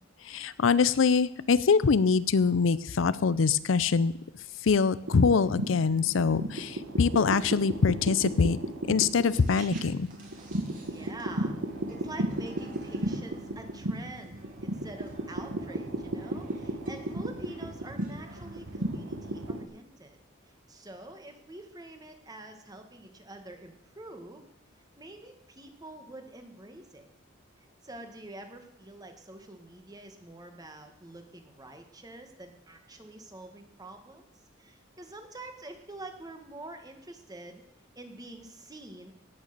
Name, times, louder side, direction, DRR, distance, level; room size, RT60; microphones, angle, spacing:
voice 1, 0.2-4.1 4.6-8.6 8.9-10.1, left 5 dB, 85° left, 16 dB, 0.5 m, -24 dB
sound 1, 5.1-19.7, right 1 dB, 90° right, 1.5 m, -35 dB
sound 2, 9.0-19.4, right 3 dB, 45° right, 3.0 m, -55 dB
voice 2, 10.9-11.6 11.9-20.2 20.7-24.5 25.0-27.1 27.6-34.3 34.6-37.6 37.9-39.1, right 2 dB, 20° right, 5 dB, 1.6 m, -46 dB
17.5 x 6.6 x 6.7 m, 0.77 s
head